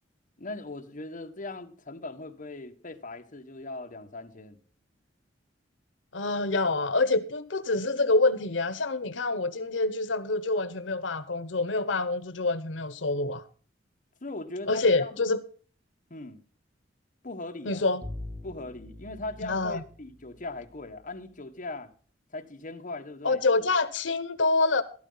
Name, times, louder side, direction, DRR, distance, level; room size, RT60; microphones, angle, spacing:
voice 1, 0.4-4.6 14.2-15.2 16.1-16.4 17.2-17.8 18.4-21.9 22.3-23.7, left 2 dB, 45° left, 1.4 m, -39 dB
voice 2, 6.1-13.4 14.7-15.4 17.7-18.0 19.4-19.8 23.2-24.8, left 3 dB, 85° left, 0.9 m, -26 dB
Bowed string instrument, 18.0-21.1, left 1 dB, 5° right, 1.7 m, -43 dB
13.5 x 12.5 x 4.0 m
head